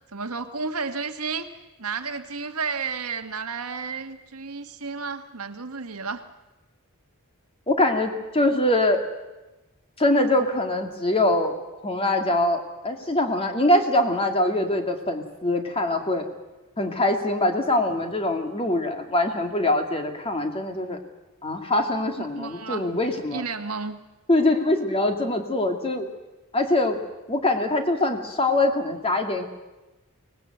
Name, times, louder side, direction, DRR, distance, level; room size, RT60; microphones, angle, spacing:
voice 1, 0.1-1.5 1.8-6.2 22.2-22.9 23.3-24.0, right 5 dB, 80° right, 7 dB, 1.5 m, -32 dB
voice 2, 7.7-9.0 10.0-16.3 16.8-21.0 21.4-23.4 24.3-26.1 26.5-27.0 27.3-29.4, left 1 dB, 25° left, 5 dB, 2.4 m, -23 dB
24.5 x 19.0 x 7.9 m, 1.1 s
head